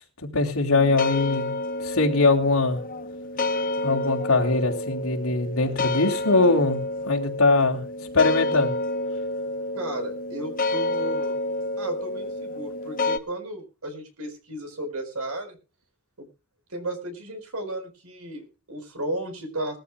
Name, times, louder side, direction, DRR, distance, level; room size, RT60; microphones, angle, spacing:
voice 1, 0.2-1.5 1.8-2.8 3.8-6.8 7.1-7.8 8.1-8.8, left 3 dB, 80° left, 1 dB, 3.4 m, -21 dB
sound 1, 0.7-13.2, left 2 dB, 40° left, 1.0 m, -29 dB
voice 2, 9.7-11.4 11.8-15.6 16.2-16.3 16.7-19.8, right 1 dB, 90° right, 6 dB, 4.6 m, -34 dB
20.5 x 14.0 x 2.3 m, 0.30 s
head